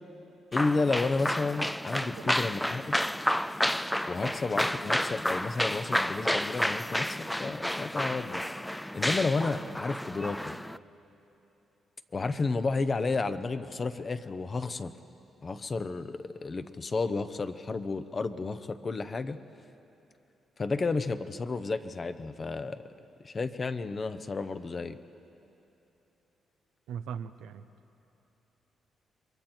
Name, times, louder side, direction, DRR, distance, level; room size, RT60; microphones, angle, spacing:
voice 1, 0.5-3.0 4.1-8.4 8.9-10.5 12.1-14.9 15.4-19.4 20.6-22.8 23.2-25.0, left 3 dB, 40° left, 10 dB, 0.9 m, -31 dB
sound 1, 0.5-10.8, left 1 dB, 5° left, 0.4 m, -31 dB
voice 2, 2.0-2.3 4.2-4.3 26.9-27.7, right 8 dB, 90° right, 9 dB, 0.7 m, -40 dB
28.5 x 23.0 x 4.5 m, 3.0 s
cardioid pair, 70°, 0 cm